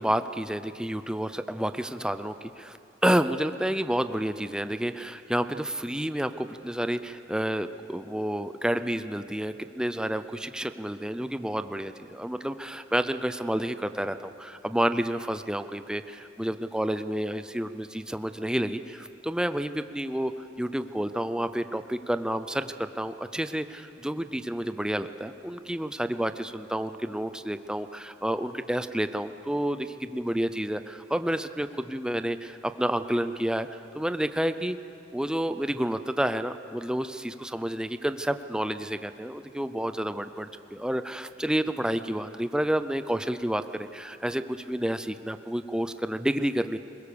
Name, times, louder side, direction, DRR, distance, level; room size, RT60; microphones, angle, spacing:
voice 1, 0.0-20.3 20.6-34.8 35.1-46.8, right 1 dB, 5° right, 10 dB, 0.6 m, -30 dB
22.0 x 20.5 x 6.9 m, 2.7 s
head